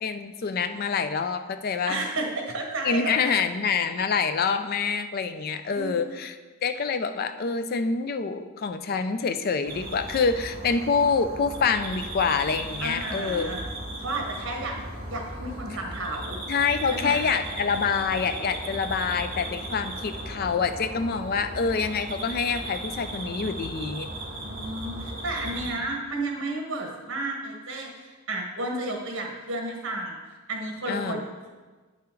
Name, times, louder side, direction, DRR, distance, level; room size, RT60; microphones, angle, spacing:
voice 1, 0.0-2.0 2.8-6.3 6.6-13.5 16.5-24.1 30.9-31.2, left 5 dB, 45° left, 10 dB, 0.4 m, -26 dB
voice 2, 1.9-3.5 5.7-5.9 12.8-13.6 14.0-14.8 15.1-16.4 16.9-17.2 24.4-30.2 30.5-31.5, right 2 dB, 60° right, 1 dB, 1.5 m, -32 dB
sound 1, 9.6-25.7, right 1 dB, 45° right, 2.4 m, -36 dB
9.3 x 5.7 x 3.8 m, 1.3 s
head